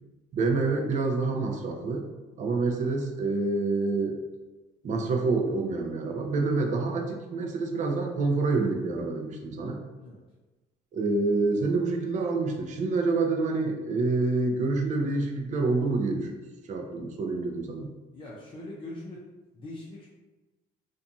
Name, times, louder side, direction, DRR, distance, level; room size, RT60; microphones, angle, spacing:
voice 1, 0.3-2.1 2.4-4.2 4.8-9.8 10.9-16.4 16.7-17.9, right 3 dB, 45° right, 2 dB, 0.5 m, -27 dB
voice 2, 18.1-19.2 19.5-20.1, left 1 dB, 30° left, -5 dB, 0.5 m, -42 dB
2.5 x 2.3 x 2.7 m, 1.2 s
cardioid pair, 110°, 17 cm